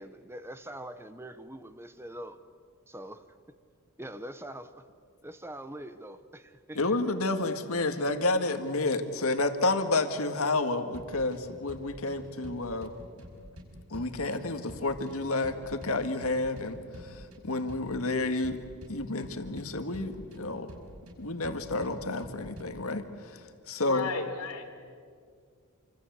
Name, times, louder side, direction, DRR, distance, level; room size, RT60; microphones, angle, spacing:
voice 1, 0.0-2.4 2.9-3.2 4.0-4.8 5.2-6.8, right 1 dB, 10° right, 11 dB, 1.0 m, -43 dB
voice 2, 6.8-12.9 13.9-18.6 18.9-20.7 21.2-24.1, left 2 dB, 70° left, 7 dB, 1.9 m, -30 dB
sound 1, 10.9-22.9, equal, 70° right, 5.2 m, -49 dB
voice 3, 23.8-24.7, left 4 dB, 90° left, 4 dB, 3.7 m, -34 dB
28.5 x 25.5 x 8.3 m, 2.1 s
head